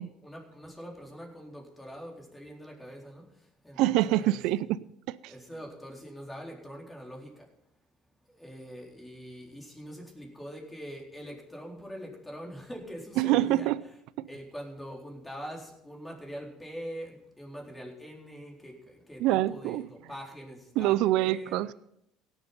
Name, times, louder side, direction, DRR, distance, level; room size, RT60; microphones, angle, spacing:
voice 1, 0.0-4.4 5.3-7.5 8.3-13.7 14.3-21.6, equal, 10° left, -1 dB, 4.0 m, -43 dB
voice 2, 3.8-4.8 5.1-5.3 13.2-13.8 14.2-14.3 19.2-19.9 20.8-21.7, right 15 dB, 70° right, 18 dB, 0.4 m, -25 dB
17.0 x 7.2 x 5.5 m, 0.79 s
hypercardioid pair, 75°, 0 cm